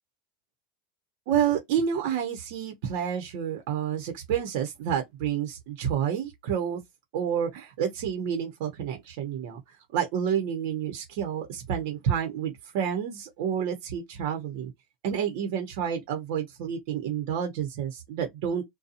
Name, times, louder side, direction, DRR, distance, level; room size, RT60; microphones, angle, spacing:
voice 1, 1.3-6.8 7.1-9.6 9.9-14.7 15.0-18.6, right 8 dB, 65° right, 0.8 m, -29 dB
2.5 x 2.2 x 2.7 m
supercardioid pair, 140°, 0 cm